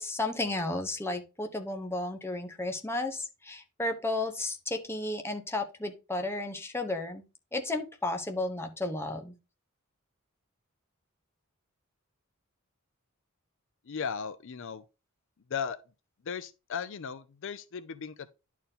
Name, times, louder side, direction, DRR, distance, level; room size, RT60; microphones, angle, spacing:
voice 1, 0.0-7.2 7.5-9.3, left 2 dB, 10° left, 1.0 m, -33 dB
voice 2, 13.9-14.8 15.5-15.8 16.2-18.3, left 6 dB, 60° left, 0.5 m, -36 dB
10.5 x 4.5 x 3.6 m
head